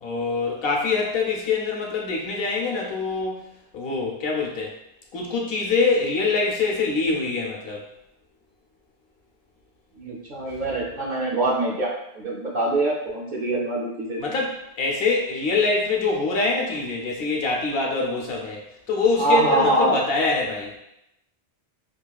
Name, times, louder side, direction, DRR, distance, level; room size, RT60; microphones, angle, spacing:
voice 1, 0.0-3.5 3.7-4.7 5.1-7.9 10.5-10.6 14.2-20.7, left 4 dB, 70° left, -2 dB, 0.8 m, -24 dB
voice 2, 10.0-14.3 19.2-20.0, right 2 dB, 55° right, -4 dB, 0.6 m, -24 dB
2.9 x 2.3 x 2.2 m, 0.83 s
omnidirectional pair, 1.1 m